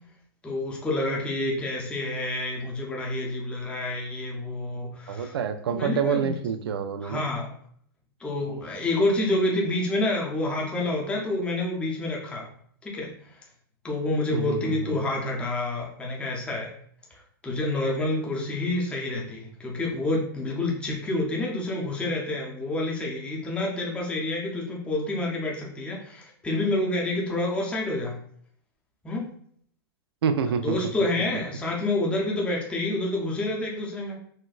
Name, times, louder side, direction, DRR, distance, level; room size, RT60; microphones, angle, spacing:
voice 1, 0.4-5.4 5.7-6.3 7.0-7.5 8.2-12.5 12.8-13.1 13.8-16.7 17.4-28.2 29.0-29.3 30.6-34.2, left 2 dB, 10° left, -2 dB, 0.6 m, -28 dB
voice 2, 5.1-7.2 14.3-15.0 30.2-30.8, right 7 dB, 80° right, 9 dB, 0.4 m, -27 dB
4.1 x 2.1 x 2.4 m, 0.62 s
hypercardioid pair, 130°, 13 cm